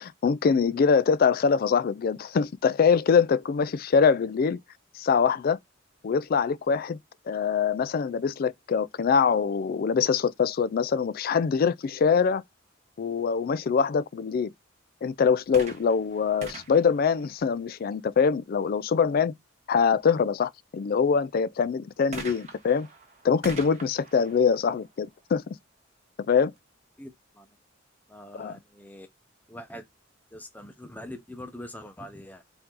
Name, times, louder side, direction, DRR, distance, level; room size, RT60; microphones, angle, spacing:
voice 1, 0.0-4.6 5.0-5.6 6.0-7.0 7.3-12.4 13.0-14.5 15.0-19.3 19.7-22.9 23.2-25.4 26.3-26.5 28.4-28.5, left 6 dB, 45° left, 0.3 m, -24 dB
sound 1, 15.5-18.0 22.1-25.8 26.6-26.7, right 3 dB, 35° right, 1.3 m, -44 dB
voice 2, 27.0-27.5 28.1-29.1 29.5-29.8 30.3-32.4, left 1 dB, 10° left, 0.7 m, -43 dB
4.6 x 2.7 x 3.7 m
head